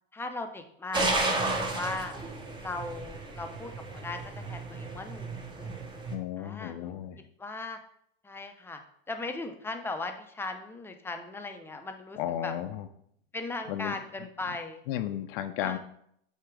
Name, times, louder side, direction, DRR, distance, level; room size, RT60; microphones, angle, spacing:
voice 1, 0.1-2.1 2.6-3.7 4.0-4.2 4.5-5.7 6.4-7.0 7.4-7.8 8.2-8.8 9.1-12.5 13.3-14.8 15.6-15.8, left 3 dB, 10° left, 5 dB, 0.6 m, -38 dB
sound 1, 0.9-6.2, right 2 dB, 15° right, 0.9 m, -33 dB
voice 2, 6.1-7.2 12.2-12.9 13.7-14.0 14.9-15.8, left 11 dB, 65° left, 8 dB, 0.7 m, -33 dB
8.3 x 2.9 x 4.7 m, 0.70 s
supercardioid pair, 125°, 30 cm